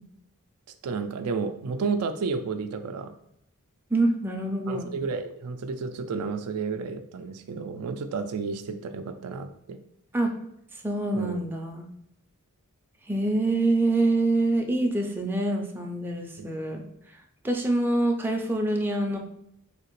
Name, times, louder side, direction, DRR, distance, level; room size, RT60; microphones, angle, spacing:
voice 1, 0.8-3.1 4.7-9.8 11.1-11.4 16.4-16.5, right 4 dB, 80° right, 8 dB, 0.4 m, -31 dB
voice 2, 3.9-4.9 10.1-10.3 10.7-11.9 13.1-16.8 17.1-19.2, right 2 dB, 10° right, 2 dB, 0.4 m, -26 dB
3.2 x 2.8 x 3.0 m, 0.78 s
head